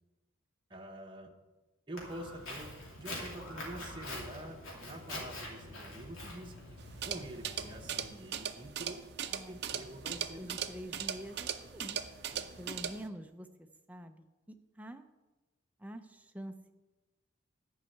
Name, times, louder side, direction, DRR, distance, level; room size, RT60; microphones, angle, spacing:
voice 1, 0.7-1.3 1.9-6.8 7.0-9.0 9.5-10.6 12.3-12.5, right 1 dB, 25° right, 1 dB, 0.9 m, -47 dB
Walk footsteps, 2.0-8.1, left 1 dB, 80° left, 2.7 m, -45 dB
sound 1, 6.8-13.1, right 8 dB, 50° right, 0.6 m, -39 dB
voice 2, 9.3-9.9 10.4-12.0 12.6-15.0 15.8-16.7, equal, 5° right, 7 dB, 0.5 m, -47 dB
10.5 x 5.5 x 7.7 m, 1.2 s
head